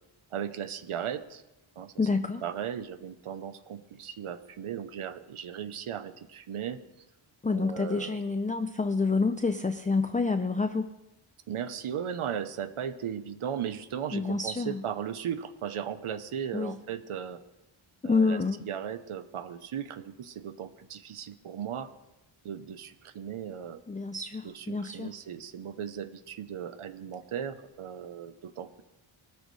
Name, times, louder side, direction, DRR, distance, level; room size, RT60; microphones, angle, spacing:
voice 1, 0.3-1.4 1.8-1.9 2.4-6.8 7.5-8.2 11.5-17.4 18.0-21.9 22.4-23.8 24.4-28.8, right 8 dB, 90° right, 11 dB, 1.0 m, -37 dB
voice 2, 2.0-2.4 7.4-10.9 14.1-14.8 16.5-16.7 18.0-18.6 23.9-25.1, left 4 dB, 15° left, 8 dB, 0.4 m, -28 dB
23.5 x 13.5 x 3.3 m, 0.96 s
wide cardioid pair, 145°, 49 cm